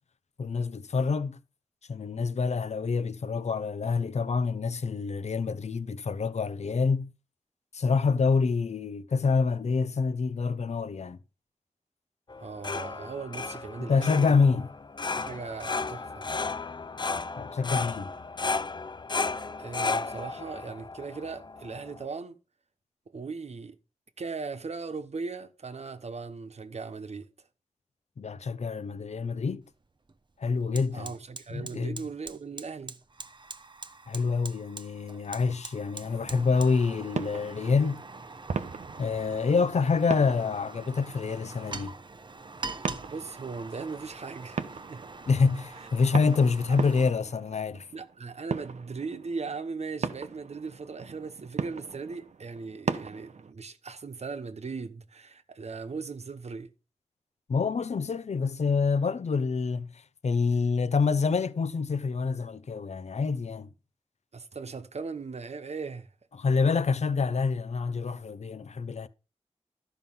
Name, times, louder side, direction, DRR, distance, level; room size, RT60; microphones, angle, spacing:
voice 1, 0.4-1.4 1.9-7.1 7.7-11.2 13.9-14.7 17.4-18.1 28.2-29.6 30.4-31.1 31.5-32.0 34.1-38.0 39.0-42.0 45.3-47.9 57.5-63.7 66.4-69.1, left 5 dB, 75° left, 0.8 m, -27 dB
sound 1, 12.3-22.0, left 4 dB, 40° left, 0.5 m, -34 dB
voice 2, 12.4-14.4 15.2-16.2 19.6-22.4 23.1-23.8 24.2-27.3 30.9-33.0 43.1-45.0 47.9-56.7 64.3-66.1, right 4 dB, 70° right, 1.1 m, -38 dB
Fire, 29.6-29.7 30.1-47.1, right 3 dB, 40° right, 0.9 m, -44 dB
sound 2, 36.0-53.5, right 5 dB, 85° right, 0.9 m, -39 dB
13.0 x 5.9 x 5.6 m
wide cardioid pair, 85°, 12 cm